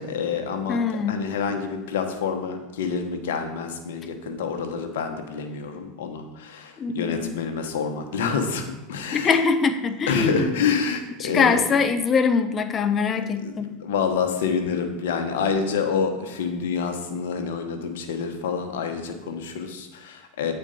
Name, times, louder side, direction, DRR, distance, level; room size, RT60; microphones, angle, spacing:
voice 1, 0.0-0.8 1.1-9.4 10.1-11.6 13.4-20.5, left 6 dB, 80° left, 6 dB, 1.1 m, -27 dB
voice 2, 0.7-1.2 6.8-7.3 9.1-10.5 11.2-13.8, left 5 dB, 30° left, 9 dB, 0.7 m, -23 dB
8.7 x 4.5 x 5.3 m, 1.1 s
hypercardioid pair, 100°, 0 cm